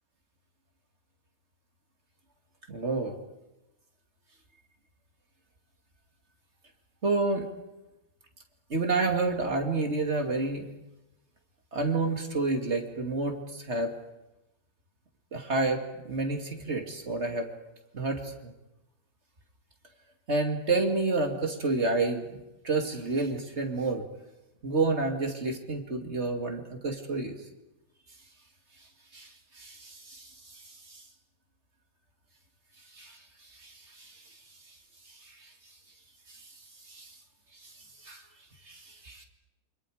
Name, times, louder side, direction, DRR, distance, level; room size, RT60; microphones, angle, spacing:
voice 1, 2.7-3.2 7.0-7.5 8.7-10.7 11.7-13.9 15.3-17.5 17.9-18.5 20.3-22.4 22.6-24.0 24.6-27.3 29.1-29.3 29.6-30.3 30.9-31.0 33.0-33.2 33.6-34.2 36.9-37.1 37.6-37.7 38.0-38.2 38.7-39.2, right 3 dB, 35° right, 4 dB, 2.6 m, -29 dB
28.5 x 25.5 x 5.0 m, 0.96 s
omnidirectional pair, 2.2 m